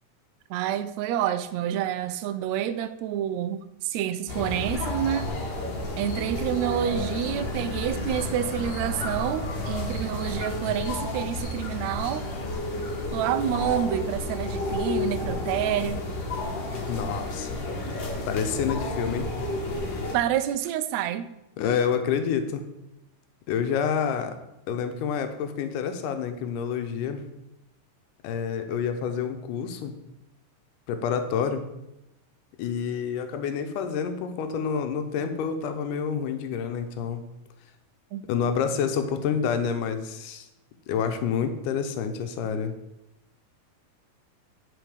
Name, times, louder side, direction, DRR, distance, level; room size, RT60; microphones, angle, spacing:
voice 1, 0.5-5.3 6.0-12.3 13.1-16.0 17.8-18.0 20.1-21.3 38.1-38.2, right 10 dB, 80° right, 11 dB, 1.6 m, -28 dB
sound 1, 4.3-20.2, left 2 dB, 50° left, 1.6 m, -31 dB
voice 2, 16.9-17.6 18.3-19.3 21.6-22.7 23.5-24.4 24.7-27.2 28.2-29.9 30.9-31.7 32.6-37.2 38.3-40.5 40.9-42.7, left 7 dB, 85° left, 7 dB, 2.3 m, -28 dB
9.4 x 5.1 x 5.0 m, 0.88 s
omnidirectional pair, 3.6 m